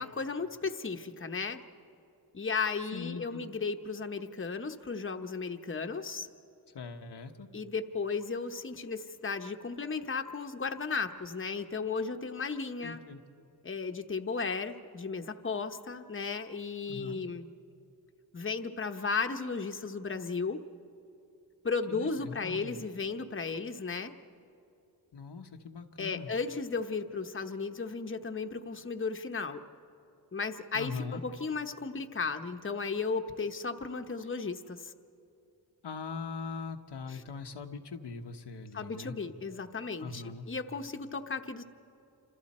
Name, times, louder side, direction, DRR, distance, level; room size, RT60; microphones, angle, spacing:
voice 1, 0.0-1.6 2.3-6.3 7.5-13.0 13.6-17.5 18.3-20.6 21.6-24.1 26.0-29.6 30.3-34.9 37.1-37.2 38.7-41.6, left 4 dB, 30° left, 6 dB, 1.0 m, -35 dB
voice 2, 2.9-3.5 6.7-7.5 12.8-13.2 16.9-17.2 21.9-22.8 25.1-26.3 30.7-31.2 35.8-39.2 40.0-40.5, left 4 dB, 90° left, 5 dB, 1.2 m, -41 dB
28.5 x 27.0 x 4.3 m, 2.7 s
wide cardioid pair, 70°, 40 cm